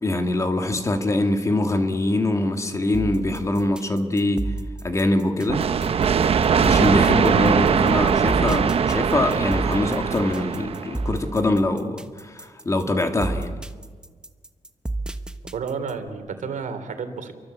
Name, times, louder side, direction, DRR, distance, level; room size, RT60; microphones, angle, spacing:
voice 1, 0.0-4.5 4.8-5.6 6.5-13.5, left 2 dB, 25° left, 5 dB, 2.1 m, -23 dB
sound 1, 2.9-16.1, right 2 dB, 5° right, 1.1 m, -32 dB
sound 2, 5.5-11.1, right 6 dB, 50° right, 0.9 m, -21 dB
voice 2, 15.5-17.3, right 5 dB, 80° right, 8 dB, 3.2 m, -31 dB
30.0 x 24.0 x 8.2 m, 1.5 s
wide cardioid pair, 165°, 13 cm